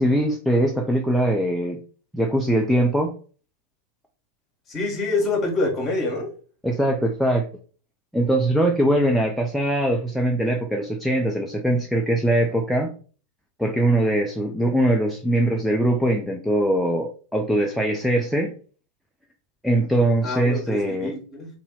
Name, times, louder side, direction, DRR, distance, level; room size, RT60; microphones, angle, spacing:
voice 1, 0.0-1.8 2.1-3.1 6.6-7.4 8.1-12.9 13.6-18.5 19.6-21.1, right 1 dB, ahead, 0.5 m, -21 dB
voice 2, 4.7-6.3 20.2-21.5, left 2 dB, 25° left, 1.2 m, -26 dB
2.8 x 2.7 x 3.8 m
figure-of-eight pair, 90°, 0 cm